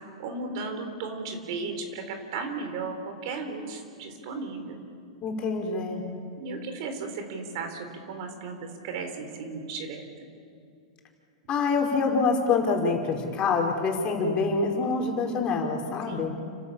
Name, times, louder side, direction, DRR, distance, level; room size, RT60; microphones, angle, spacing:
voice 1, 0.2-4.8 6.4-10.3 14.8-15.2 16.1-16.4, right 4 dB, 60° right, 6 dB, 4.0 m, -35 dB
voice 2, 5.2-6.0 11.5-16.3, left 4 dB, 35° left, 1 dB, 4.4 m, -26 dB
30.0 x 13.0 x 8.8 m, 2.4 s
hypercardioid pair, 110°, 3 cm